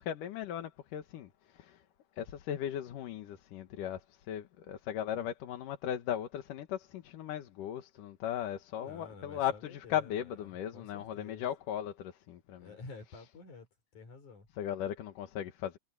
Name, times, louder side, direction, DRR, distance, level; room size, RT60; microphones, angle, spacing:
voice 1, 0.0-1.8 2.2-12.7 14.6-15.8, left 10 dB, 85° left, 3.0 m, -37 dB
voice 2, 8.8-11.5 12.6-13.7 13.9-14.5, left 4 dB, 65° left, 6.2 m, -50 dB
omnidirectional pair, 3.7 m